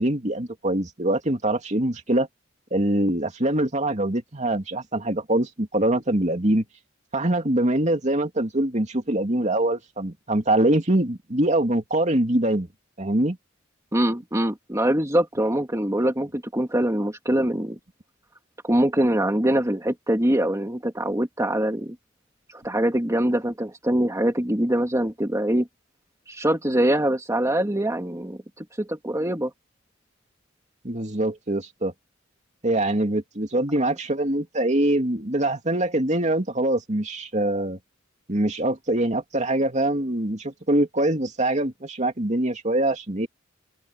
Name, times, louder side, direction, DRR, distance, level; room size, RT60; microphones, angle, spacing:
voice 1, 0.0-2.3 2.7-6.7 7.1-12.7 13.0-13.4 30.8-31.9 32.6-37.8 38.3-43.3, right 1 dB, 35° right, 2.7 m, -23 dB
voice 2, 13.9-17.8 18.6-22.0 22.5-25.7 26.3-29.5, right 1 dB, 15° right, 2.1 m, -23 dB
open air
head